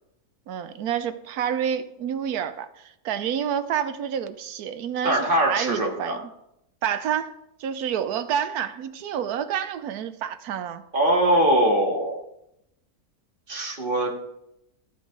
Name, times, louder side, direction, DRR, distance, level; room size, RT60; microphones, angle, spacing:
voice 1, 0.5-6.2 6.8-7.3 7.6-10.8, right 9 dB, 80° right, 1.2 m, -28 dB
voice 2, 5.0-6.2 10.9-12.2 13.5-14.1, right 1 dB, 35° right, 2.0 m, -22 dB
14.0 x 7.1 x 3.9 m
omnidirectional pair, 1.6 m